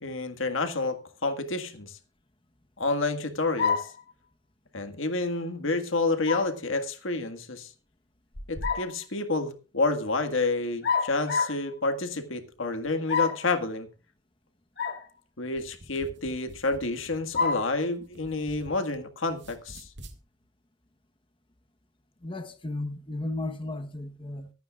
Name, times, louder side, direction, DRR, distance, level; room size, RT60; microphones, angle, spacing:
voice 1, 0.0-2.0 2.8-3.9 4.7-7.7 8.5-13.9 15.4-19.9, left 3 dB, 75° left, 1.8 m, -29 dB
sound 1, 3.6-4.0 6.3-6.6 8.3-9.0 10.8-11.6 13.1-13.5 14.8-15.0 15.6-15.7 17.3-17.7, left 5 dB, 55° left, 2.4 m, -28 dB
sound 2, 15.6-19.0 19.3-20.2, right 1 dB, 60° right, 2.0 m, -49 dB
voice 2, 22.2-24.5, left 2 dB, 25° left, 1.0 m, -34 dB
24.5 x 9.3 x 2.4 m
head